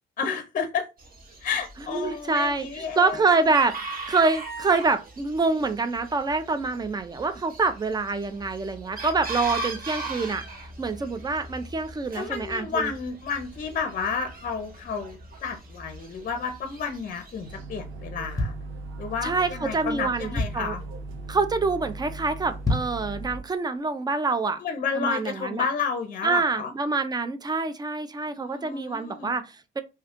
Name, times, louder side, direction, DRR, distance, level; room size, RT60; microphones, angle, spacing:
voice 1, 0.2-0.9 1.4-3.2 12.1-18.5 19.0-20.8 24.6-26.7 28.3-29.3, left 6 dB, 45° left, 0.6 m, -31 dB
Chicken rooster, 1.0-17.6, right 2 dB, 45° right, 1.1 m, -40 dB
voice 2, 1.9-10.4 10.8-12.9 19.2-20.8 21.3-24.6 24.9-25.7 26.2-29.8, right 3 dB, 20° right, 0.4 m, -26 dB
sound 1, 17.4-23.4, right 2 dB, 85° right, 0.6 m, -38 dB
sound 2, 18.3-19.3 19.8-19.9 20.1-20.8 21.3-21.6 21.8-21.9 22.5-23.1 23.5-23.6, left 2 dB, 15° left, 0.8 m, -29 dB
2.8 x 2.3 x 3.6 m
cardioid pair, 90°, 20 cm